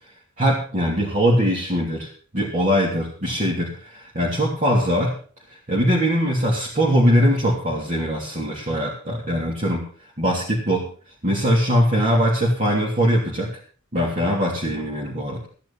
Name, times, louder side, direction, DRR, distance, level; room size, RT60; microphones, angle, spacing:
voice 1, 0.4-5.1 5.7-9.8 10.2-10.9 11.2-13.5 13.9-15.5, equal, 35° right, -4 dB, 3.1 m, -21 dB
14.0 x 10.5 x 5.7 m, 0.43 s
head